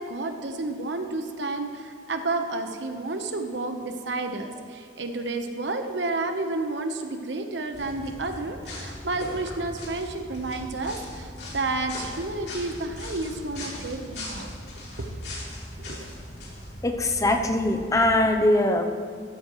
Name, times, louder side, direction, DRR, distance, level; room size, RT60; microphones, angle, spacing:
voice 1, 0.0-14.5 15.0-15.1 15.8-16.0, right 2 dB, 90° right, 6 dB, 1.0 m, -31 dB
sound 1, 7.7-18.3, left 1 dB, 75° left, 3.2 m, -39 dB
voice 2, 16.8-18.8, left 1 dB, 20° left, 4 dB, 0.7 m, -22 dB
14.0 x 12.5 x 3.2 m, 2.4 s
head